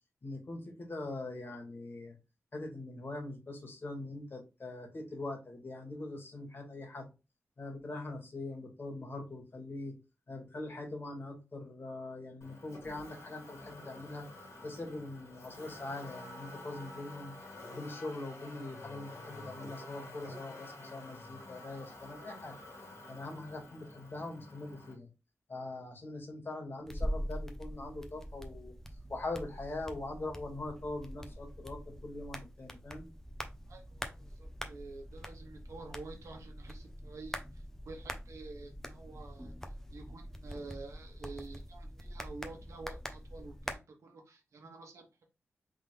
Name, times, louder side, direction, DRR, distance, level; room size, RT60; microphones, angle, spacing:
voice 1, 0.2-2.2 2.5-7.1 7.6-9.9 10.3-14.3 14.6-17.3 17.7-22.6 23.1-25.1 25.5-28.7 29.1-33.1, left 2 dB, 45° left, 2 dB, 1.9 m, -42 dB
Motor vehicle (road), 12.4-24.9, left 2 dB, 80° left, 1.8 m, -49 dB
sound 1, 26.9-43.8, equal, 10° left, 0.8 m, -44 dB
voice 2, 33.7-45.1, right 3 dB, 85° right, 2 dB, 1.3 m, -49 dB
3.8 x 3.6 x 3.3 m, 0.27 s
cardioid pair, 70°, 5 cm